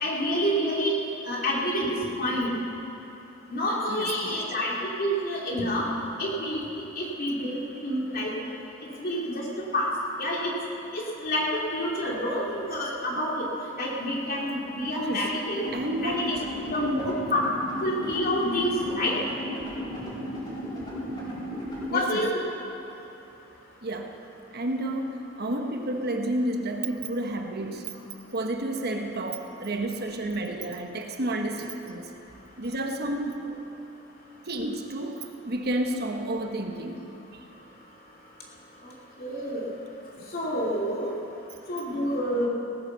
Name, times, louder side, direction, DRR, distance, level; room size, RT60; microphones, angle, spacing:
voice 1, 0.0-0.9 1.3-2.5 3.5-5.9 6.2-6.6 7.0-8.5 9.0-9.5 9.7-9.9 10.2-10.5 10.9-13.5 13.8-15.6 16.0-17.4 17.8-19.2 21.9-22.3 39.2-39.7 40.3-41.1 41.7-42.5, equal, 50° left, -3 dB, 2.7 m, -28 dB
voice 2, 3.9-4.5 15.0-15.3 15.7-16.4 21.9-22.3 23.8-24.1 24.5-28.0 28.3-32.1 32.6-33.7 34.4-37.1 37.3-37.4, right 1 dB, 55° right, 3 dB, 1.1 m, -31 dB
sound 1, 15.5-21.9, equal, 25° left, 4.4 m, -35 dB
17.5 x 9.9 x 6.7 m, 2.9 s
head